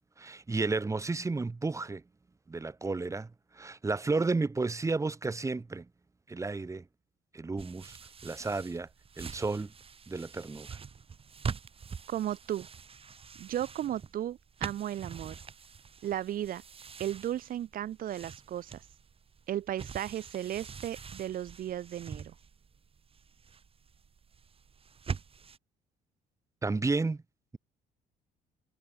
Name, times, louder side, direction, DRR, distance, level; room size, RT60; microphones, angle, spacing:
voice 1, 0.2-2.0 2.5-3.3 3.6-5.9 6.3-6.8 7.3-8.0 8.2-8.9 9.2-9.7 10.1-10.7 26.6-27.2, right 3 dB, 15° right, 1.9 m, -32 dB
sound 1, 7.6-25.6, right 6 dB, 35° right, 6.8 m, -44 dB
voice 2, 12.1-12.7 13.4-15.4 16.0-16.6 17.0-18.8 19.5-22.3, right 11 dB, 55° right, 1.3 m, -35 dB
cardioid pair, 110°, 17 cm